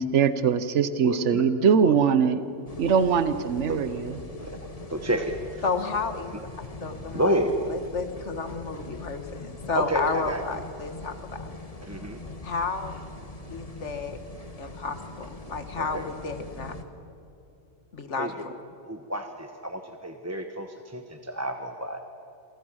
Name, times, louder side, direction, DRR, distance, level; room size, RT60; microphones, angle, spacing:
voice 1, 0.0-2.4 2.8-4.2, right 6 dB, 70° right, 12 dB, 1.2 m, -22 dB
voice 2, 1.0-1.4 1.8-1.9 3.7-3.8 4.4-4.6 4.9-5.6 7.1-7.5 9.7-10.4 11.8-12.2 15.8-16.0 18.2-18.3 18.8-22.0, right 1 dB, 15° right, 4 dB, 1.1 m, -29 dB
sound 1, 2.7-16.8, left 2 dB, 30° left, 1.6 m, -41 dB
voice 3, 5.6-6.4 6.7-7.4 7.7-11.5 12.4-13.0 13.5-14.2 14.6-16.8 17.9-18.5, left 4 dB, 70° left, 8 dB, 1.9 m, -32 dB
28.5 x 23.5 x 6.3 m, 2.8 s
omnidirectional pair, 1.3 m